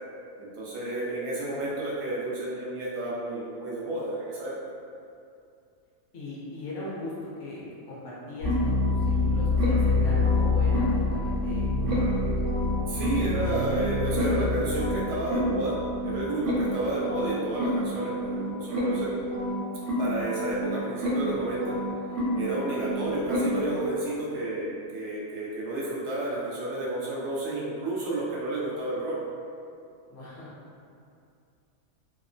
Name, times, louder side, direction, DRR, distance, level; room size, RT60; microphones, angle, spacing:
voice 1, 0.4-4.5 12.9-19.1 20.0-21.8 22.3-29.1, right 2 dB, 65° right, -7 dB, 0.7 m, -31 dB
voice 2, 6.1-12.0 30.1-30.5, left 2 dB, 65° left, -7 dB, 0.8 m, -39 dB
sound 1, 8.4-23.9, left 1 dB, 90° right, 1.1 m, -27 dB
2.8 x 2.0 x 2.4 m, 2.5 s
omnidirectional pair, 1.5 m